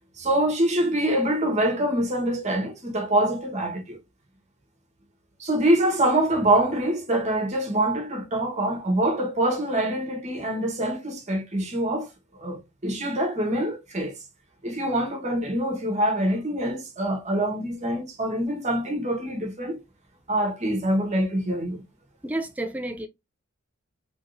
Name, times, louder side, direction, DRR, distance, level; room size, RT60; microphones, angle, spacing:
voice 1, 0.2-4.0 5.4-12.1 12.4-14.1 14.6-19.8 20.3-21.8, right 1 dB, 35° right, 1.2 m, -25 dB
voice 2, 22.2-23.1, right 1 dB, 5° right, 0.4 m, -30 dB
3.6 x 3.5 x 2.5 m
head